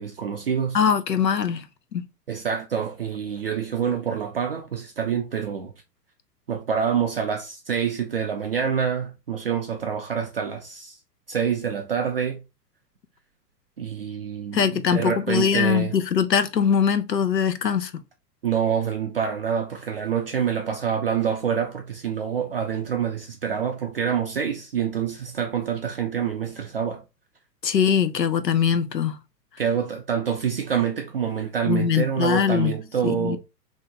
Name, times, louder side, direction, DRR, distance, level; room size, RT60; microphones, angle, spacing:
voice 1, 0.0-0.8 2.3-5.7 6.5-11.0 11.3-12.4 13.8-16.0 18.4-27.0 29.6-33.4, right 7 dB, 40° right, 0.4 m, -26 dB
voice 2, 0.7-1.7 1.9-2.0 14.5-17.9 27.6-29.2 31.7-32.7 33.0-33.4, left 7 dB, 85° left, 0.6 m, -22 dB
2.8 x 2.7 x 3.4 m
figure-of-eight pair, 110°, 49 cm